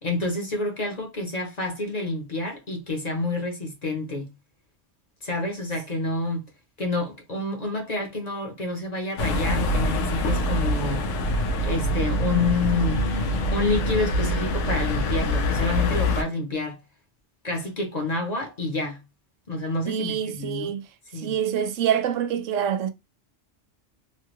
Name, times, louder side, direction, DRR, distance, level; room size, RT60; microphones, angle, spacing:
voice 1, 0.0-4.3 5.2-6.5 6.8-11.1 11.6-13.1 13.5-16.8 17.4-19.0 19.5-20.7 21.1-21.4, left 2 dB, 40° left, 0.8 m, -28 dB
sound 1, 9.2-16.2, left 1 dB, 85° left, 1.0 m, -24 dB
voice 2, 19.9-20.8 21.2-22.9, right 8 dB, 90° right, 0.9 m, -26 dB
3.1 x 2.2 x 3.0 m
omnidirectional pair, 1.2 m